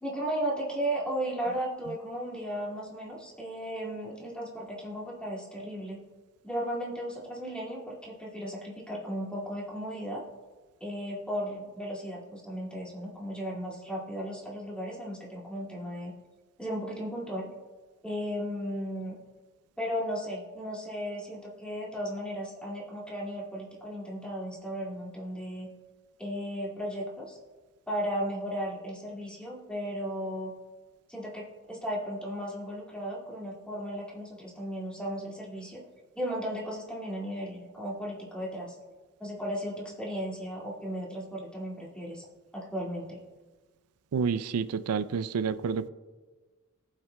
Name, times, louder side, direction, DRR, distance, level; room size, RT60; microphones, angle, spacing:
voice 1, 0.0-6.0 6.4-10.2 10.8-16.1 16.6-17.5 18.0-19.2 19.8-25.7 26.2-27.4 27.9-30.5 31.1-35.8 36.2-38.8 39.2-42.3 42.5-43.2, equal, 5° left, 2.1 m, -35 dB
voice 2, 44.1-45.9, right 6 dB, 85° right, 0.4 m, -29 dB
19.0 x 7.5 x 2.2 m
head